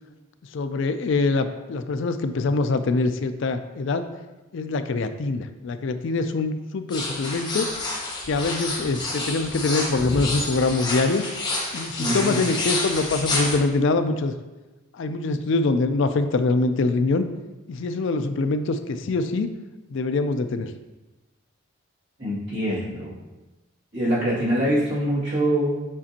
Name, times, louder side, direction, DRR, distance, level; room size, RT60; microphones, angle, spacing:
voice 1, 0.5-4.1 4.5-7.7 8.3-11.2 11.7-14.3 14.9-17.3 17.7-19.5 19.9-20.7, left 3 dB, 60° left, 10 dB, 0.4 m, -24 dB
sound 1, 6.9-13.6, left 2 dB, 20° left, 1.2 m, -29 dB
voice 2, 12.0-12.4 22.2-23.1 23.9-25.9, right 1 dB, 55° right, -8 dB, 2.2 m, -24 dB
7.4 x 5.2 x 2.8 m, 1.1 s
head